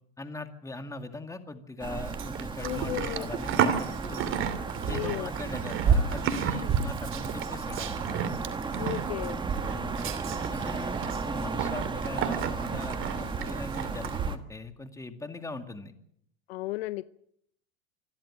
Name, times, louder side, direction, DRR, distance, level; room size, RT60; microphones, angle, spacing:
voice 1, 0.2-4.3 4.9-8.1 9.7-10.1 10.5-15.9, left 2 dB, 10° left, 2.2 m, -41 dB
sound 1, 1.8-14.4, right 4 dB, 15° right, 1.6 m, -35 dB
Livestock farm animals working animals, 1.8-14.3, right 7 dB, 40° right, 2.7 m, -31 dB
voice 2, 2.6-3.3 4.9-5.3 6.5-6.7 8.8-9.4 16.5-17.1, left 16 dB, 85° left, 0.8 m, -34 dB
26.0 x 12.0 x 8.9 m
supercardioid pair, 115°, 30 cm